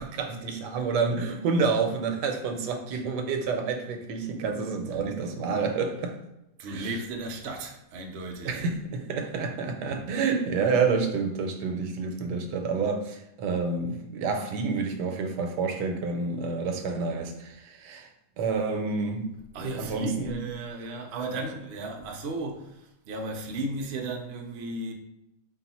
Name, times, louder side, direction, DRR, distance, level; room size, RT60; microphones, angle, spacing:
voice 1, 0.0-6.1 6.7-6.9 8.4-18.1 18.4-19.3 19.8-20.4, right 4 dB, 85° right, 1.2 m, -29 dB
voice 2, 6.6-8.6 9.9-10.0 19.5-24.9, right 2 dB, 65° right, 0.6 m, -35 dB
3.8 x 2.4 x 4.1 m
omnidirectional pair, 1.8 m